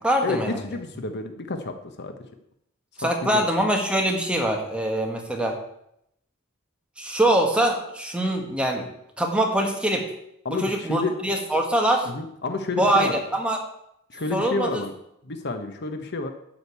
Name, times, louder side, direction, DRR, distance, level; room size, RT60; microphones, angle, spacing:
voice 1, 0.0-0.6 3.0-5.6 7.0-8.9 9.2-10.1 10.6-12.1 12.8-13.6 14.3-14.8, right 1 dB, 5° right, 1 dB, 1.6 m, -23 dB
voice 2, 0.6-2.1 3.0-3.4 10.4-11.2 12.1-13.2 14.1-14.9 15.2-16.3, left 3 dB, 55° left, 7 dB, 1.0 m, -30 dB
11.5 x 5.2 x 8.3 m, 0.77 s
head